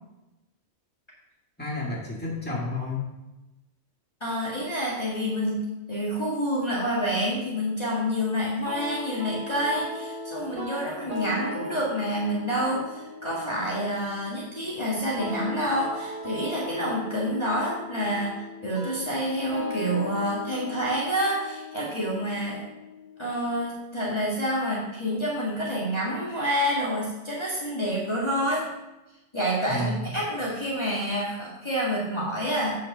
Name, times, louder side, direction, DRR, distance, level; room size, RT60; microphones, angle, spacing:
voice 1, 1.6-3.1 29.7-30.2, left 2 dB, 10° left, -5 dB, 2.1 m, -31 dB
voice 2, 4.2-5.6 5.9-22.6 23.2-28.7 29.3-32.8, equal, 25° left, -7 dB, 2.0 m, -28 dB
sound 1, 8.6-23.6, left 2 dB, 45° right, 1.8 m, -38 dB
9.0 x 5.1 x 5.7 m, 1.0 s
omnidirectional pair, 1.2 m